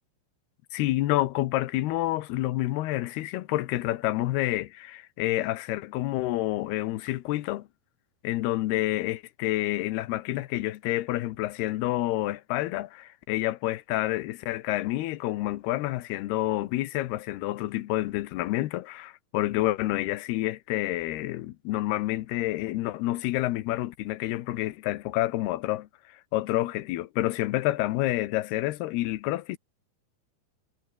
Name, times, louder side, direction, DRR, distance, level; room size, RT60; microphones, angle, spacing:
voice 1, 0.7-7.7 8.2-29.6, left 16 dB, 90° left, 3.0 m, -28 dB
omnidirectional pair, 4.5 m